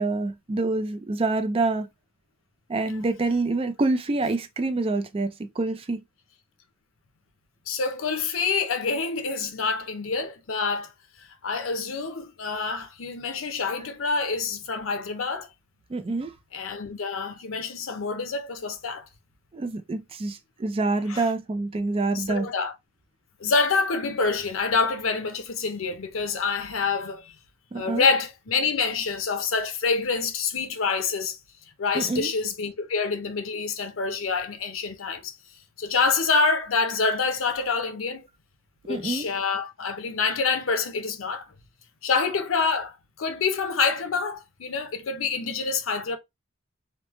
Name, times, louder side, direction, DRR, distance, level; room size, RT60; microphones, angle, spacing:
voice 1, 0.0-1.9 2.7-6.0 15.9-16.3 19.5-22.5 27.7-28.0 31.9-32.3 38.9-39.3, right 3 dB, 30° right, 0.4 m, -26 dB
voice 2, 7.7-10.9 11.4-15.5 16.5-19.1 21.1-21.2 22.1-22.7 23.4-27.3 27.7-31.4 31.8-35.3 35.8-38.2 38.9-41.5 42.0-46.2, left 4 dB, 90° left, 0.6 m, -27 dB
3.1 x 2.1 x 3.0 m
head